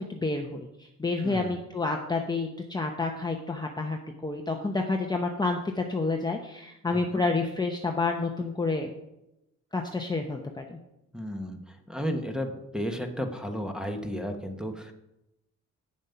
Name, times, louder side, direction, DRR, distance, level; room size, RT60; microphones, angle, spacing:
voice 1, 0.0-8.9 9.7-10.8, left 3 dB, 15° left, 2 dB, 0.9 m, -29 dB
voice 2, 1.2-1.5 6.9-7.2 11.1-14.9, equal, ahead, 5 dB, 1.2 m, -33 dB
8.8 x 7.2 x 5.7 m, 0.90 s
cardioid pair, 105°, 29 cm